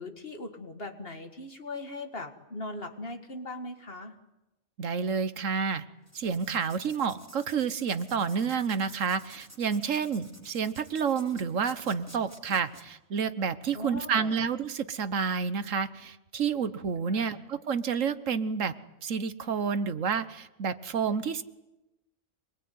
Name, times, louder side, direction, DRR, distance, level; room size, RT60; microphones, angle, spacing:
voice 1, 0.0-4.2 13.7-14.5 17.1-17.4, left 2 dB, 45° left, 7 dB, 2.2 m, -40 dB
voice 2, 4.8-5.8 6.1-18.7 19.0-21.4, right 6 dB, 70° right, 13 dB, 1.5 m, -29 dB
Writing, 6.0-12.8, right 1 dB, 10° right, 3.0 m, -52 dB
25.5 x 21.0 x 9.4 m, 0.97 s
omnidirectional pair, 1.4 m